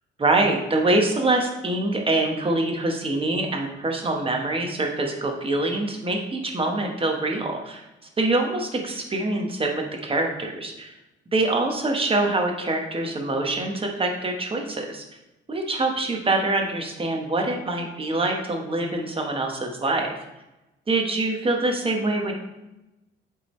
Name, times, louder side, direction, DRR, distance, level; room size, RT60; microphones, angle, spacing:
voice 1, 0.2-7.8 8.2-10.9 11.3-15.0 15.5-20.1 20.9-22.3, right 2 dB, 25° right, 2 dB, 1.3 m, -24 dB
9.1 x 3.8 x 3.2 m, 0.98 s
cardioid pair, 90°, 20 cm